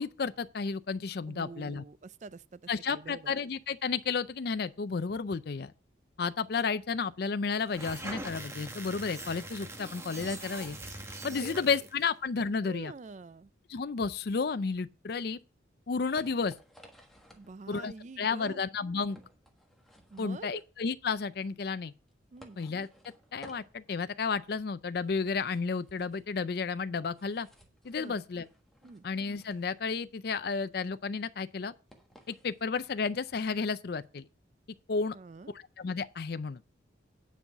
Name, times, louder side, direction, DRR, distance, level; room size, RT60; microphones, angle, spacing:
voice 1, 0.0-1.8 2.7-5.7 6.2-10.8 11.2-12.9 13.7-15.4 15.9-16.5 17.7-19.2 20.2-21.9 22.6-22.9 23.3-27.5 27.8-28.5 29.0-31.7 32.3-34.2 34.9-35.2 35.5-36.6, left 5 dB, 50° left, 0.4 m, -32 dB
voice 2, 1.3-2.6 2.9-3.3 10.4-10.6 11.2-11.7 12.6-13.5 17.4-18.6 20.1-20.6 22.3-22.6 28.0-28.2 28.8-29.0 35.1-35.5, right 4 dB, 35° right, 0.4 m, -46 dB
sound 1, 7.6-12.0, right 2 dB, 15° right, 1.1 m, -42 dB
sound 2, 15.4-33.7, equal, ahead, 1.3 m, -59 dB
9.4 x 5.5 x 6.1 m
head